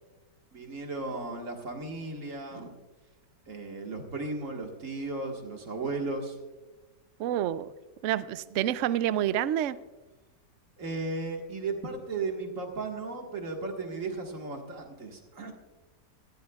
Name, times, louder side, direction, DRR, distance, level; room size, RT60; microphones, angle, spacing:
voice 1, 0.5-2.7 3.5-6.4 8.5-8.6 10.8-15.5, right 3 dB, 50° right, 2 dB, 2.0 m, -35 dB
voice 2, 7.2-7.7 8.0-9.8, right 11 dB, 90° right, 15 dB, 0.6 m, -28 dB
18.5 x 14.0 x 2.4 m, 1.1 s
omnidirectional pair, 1.8 m